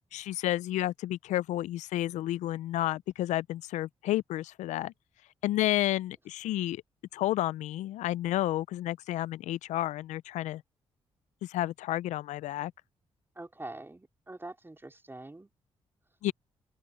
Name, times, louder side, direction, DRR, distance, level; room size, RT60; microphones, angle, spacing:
voice 1, 0.1-4.9 5.4-6.8 7.1-10.6 11.4-12.7 16.2-16.3, left 14 dB, 80° left, 0.4 m, -31 dB
voice 2, 13.4-15.5, right 2 dB, 20° right, 3.8 m, -44 dB
open air
supercardioid pair, 50°, 12 cm